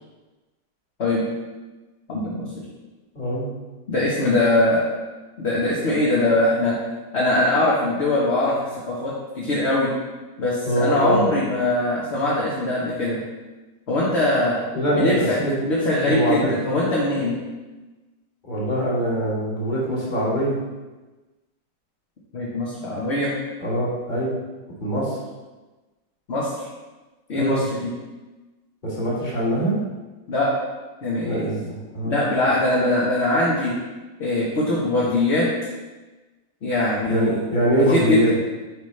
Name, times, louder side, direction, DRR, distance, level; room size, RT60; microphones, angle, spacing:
voice 1, 2.1-2.5 3.9-4.8 5.4-6.8 7.1-9.9 10.4-13.2 13.9-14.6 14.9-15.4 15.6-17.3 22.3-23.3 26.3-26.6 27.3-27.9 30.3-30.5 31.0-31.5 32.0-33.7 34.2-35.5 36.6-37.4 37.9-38.2, left 2 dB, 40° left, -6 dB, 1.2 m, -22 dB
voice 2, 3.2-3.5 10.7-11.2 14.7-15.6 16.0-16.5 18.4-20.6 23.6-24.4 24.8-25.2 27.3-27.6 28.8-29.8 31.2-32.2 37.1-38.3, right 1 dB, 25° left, -6 dB, 1.8 m, -23 dB
8.4 x 5.0 x 3.2 m, 1.2 s
omnidirectional pair, 1.9 m